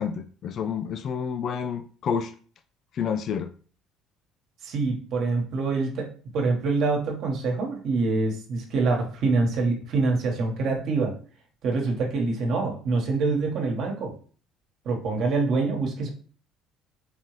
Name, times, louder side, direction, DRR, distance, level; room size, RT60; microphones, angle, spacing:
voice 1, 0.0-2.3 2.9-3.5, left 7 dB, 55° left, 9 dB, 0.4 m, -29 dB
voice 2, 4.6-11.1 11.6-14.1 14.8-16.1, right 3 dB, 60° right, 1 dB, 1.3 m, -25 dB
4.0 x 3.7 x 3.1 m, 0.42 s
hypercardioid pair, 65°, 0 cm